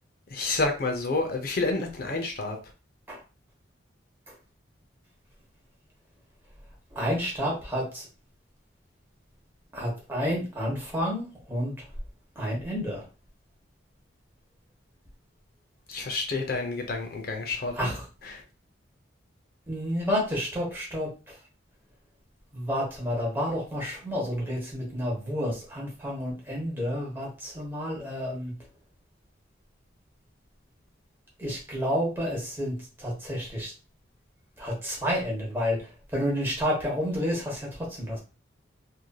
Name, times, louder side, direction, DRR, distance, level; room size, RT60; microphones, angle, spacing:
voice 1, 0.3-2.6 15.9-17.9 18.2-18.4, left 3 dB, 50° left, 4 dB, 0.5 m, -29 dB
voice 2, 6.9-8.1 9.7-11.7 12.4-13.0 17.7-18.0 19.7-21.1 22.5-28.5 31.4-33.7 34.6-35.8 36.1-38.2, equal, 10° right, -3 dB, 1.0 m, -30 dB
3.1 x 2.6 x 2.2 m, 0.32 s
head